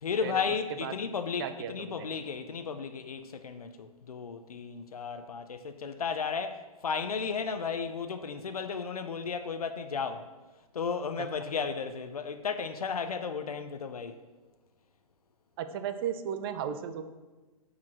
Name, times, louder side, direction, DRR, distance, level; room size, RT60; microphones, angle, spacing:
voice 1, 0.0-10.3 10.7-14.2, left 5 dB, 80° left, 0.5 m, -34 dB
voice 2, 1.4-2.1 15.6-17.0, right 8 dB, 40° right, 0.6 m, -35 dB
5.9 x 4.7 x 6.1 m
hypercardioid pair, 125°, 19 cm